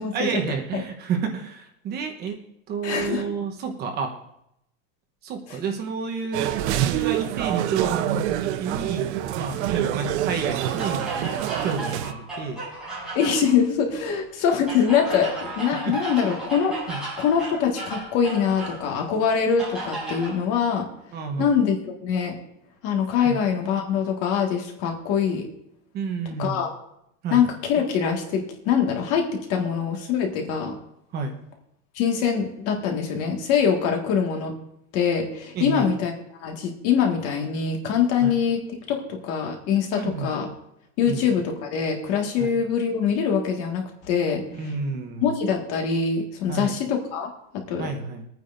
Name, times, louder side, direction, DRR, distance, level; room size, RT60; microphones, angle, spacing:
voice 1, 0.1-2.4 2.7-4.1 5.2-11.1 11.6-12.6 15.9-16.0 16.9-17.0 21.1-21.6 23.2-23.4 25.9-26.6 27.2-27.4 31.1-31.3 35.5-35.9 38.2-38.4 40.0-40.3 41.0-41.3 42.4-42.6 44.6-45.3 46.5-46.8 47.8-48.2, right 5 dB, 30° right, 3 dB, 1.0 m, -30 dB
voice 2, 2.8-3.2 5.5-5.6 13.2-20.9 21.4-22.4 22.8-25.5 26.4-26.7 27.3-30.8 32.0-34.5 34.9-36.1 36.4-40.5 41.0-44.7 45.2-47.9, left 7 dB, 45° left, 2 dB, 1.8 m, -24 dB
sound 1, 6.3-12.1, right 12 dB, 85° right, 0.8 m, -26 dB
sound 2, 10.6-13.6 14.7-18.8 19.6-20.4, right 2 dB, ahead, 5.2 m, -34 dB
22.5 x 9.4 x 2.6 m, 0.79 s
cardioid pair, 180°, 34 cm